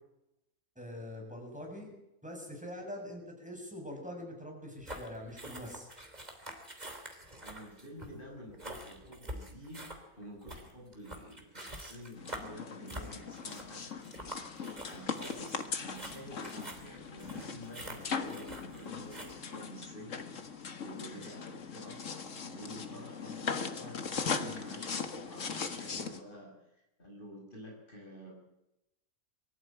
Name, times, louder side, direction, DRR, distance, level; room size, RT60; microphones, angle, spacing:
voice 1, 0.8-1.9 2.2-5.9, left 1 dB, 5° right, 1 dB, 6.8 m, -44 dB
sound 1, 4.8-19.3, right 1 dB, 25° right, 3.5 m, -46 dB
voice 2, 7.4-20.2 20.8-22.0 22.4-28.3, equal, 35° left, -1 dB, 6.8 m, -49 dB
sound 2, 12.2-26.2, left 5 dB, 55° left, 1.9 m, -39 dB
23.5 x 15.0 x 9.0 m, 0.88 s
omnidirectional pair, 1.6 m